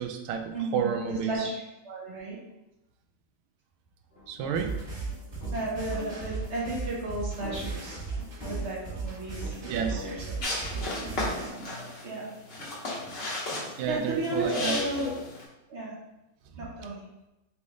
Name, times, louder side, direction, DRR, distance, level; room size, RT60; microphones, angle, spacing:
voice 1, 0.0-1.4 4.3-4.7 9.7-10.1 13.8-14.8 16.5-16.7, right 8 dB, 80° right, 6 dB, 1.3 m, -31 dB
voice 2, 0.5-2.4 5.5-8.0 8.5-10.4 10.7-12.3 12.6-12.7 13.0-13.1 13.9-15.1 15.7-16.0 16.5-17.1, right 1 dB, 55° right, -4 dB, 0.7 m, -34 dB
sound 1, 4.1-10.2, left 3 dB, 70° left, 0.4 m, -45 dB
sound 2, 4.5-11.5, right 4 dB, 40° right, 1.5 m, -36 dB
sound 3, 10.4-15.4, left 2 dB, 45° left, 0.8 m, -34 dB
3.7 x 3.2 x 3.7 m, 0.95 s
omnidirectional pair, 2.3 m